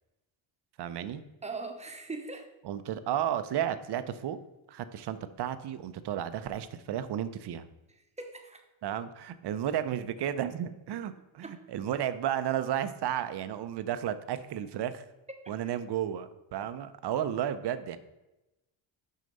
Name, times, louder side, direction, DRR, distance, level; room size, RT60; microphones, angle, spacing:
voice 1, 0.8-1.2 2.6-4.4 4.7-7.7 8.8-15.0 15.5-18.0, right 10 dB, 55° right, 12 dB, 0.7 m, -33 dB
voice 2, 1.4-2.5 8.2-8.6 11.4-11.6 15.3-15.4, right 3 dB, 15° right, 5 dB, 1.0 m, -40 dB
6.4 x 5.7 x 5.3 m, 1.0 s
cardioid pair, 95°, 48 cm